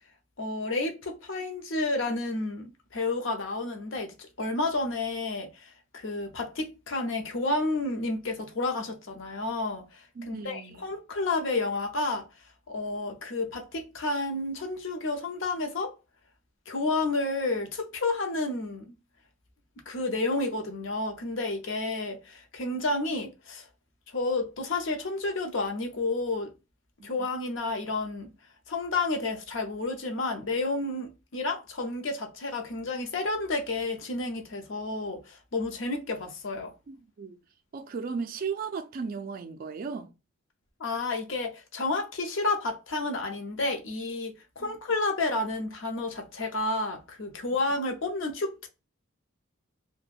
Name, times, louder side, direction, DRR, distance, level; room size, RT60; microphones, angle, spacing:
voice 1, 0.4-12.3 12.7-15.9 16.7-18.9 19.9-23.7 24.1-26.5 27.0-28.3 28.7-36.7 40.8-48.7, left 2 dB, 65° left, 0.6 m, -31 dB
voice 2, 10.2-10.8 27.0-27.1 36.9-37.4 37.7-40.1 44.6-44.7, right 5 dB, 45° right, 0.3 m, -36 dB
2.4 x 2.1 x 3.3 m
head